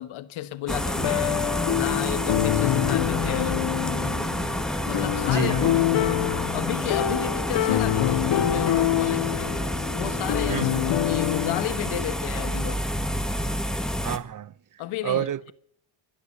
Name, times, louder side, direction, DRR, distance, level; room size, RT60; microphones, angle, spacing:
voice 1, 0.0-1.4 1.7-3.6 4.8-6.2 6.5-9.6 9.9-12.8 14.8-15.3, left 13 dB, 90° left, 1.4 m, -33 dB
sound 1, 0.7-14.2, equal, ahead, 1.5 m, -29 dB
sound 2, 1.0-11.6, left 14 dB, 65° left, 0.9 m, -26 dB
voice 2, 5.3-6.0 10.5-10.8 14.0-14.5 15.0-15.5, right 10 dB, 40° right, 0.9 m, -30 dB
24.5 x 10.0 x 5.5 m
cardioid pair, 105°, 47 cm